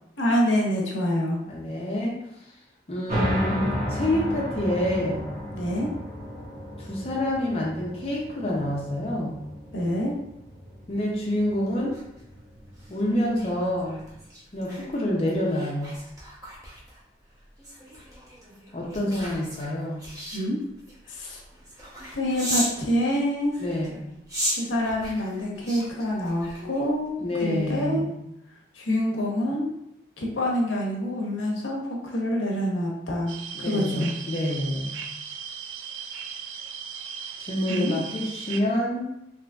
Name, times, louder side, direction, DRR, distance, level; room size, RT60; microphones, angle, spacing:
voice 1, 0.2-1.4 5.5-5.9 9.7-10.1 20.3-20.6 21.1-21.4 22.1-23.6 24.6-27.1 27.4-28.1 28.7-29.7 30.2-34.1 37.7-37.9, equal, 85° left, -2 dB, 0.8 m, -26 dB
voice 2, 1.4-2.2 2.9-5.2 6.8-9.3 10.9-12.0 12.9-14.0 14.5-16.0 18.7-20.1 23.6-24.1 27.2-28.3 33.5-35.0 37.4-39.1, left 1 dB, 30° left, -4 dB, 0.5 m, -27 dB
sound 1, 3.1-14.2, equal, 35° right, 1.4 m, -34 dB
sound 2, 11.7-22.8 23.4-27.1 27.5-27.7, equal, 20° right, 0.6 m, -37 dB
sound 3, 33.3-38.6, right 7 dB, 80° right, 0.3 m, -37 dB
3.7 x 3.0 x 2.3 m, 0.82 s
head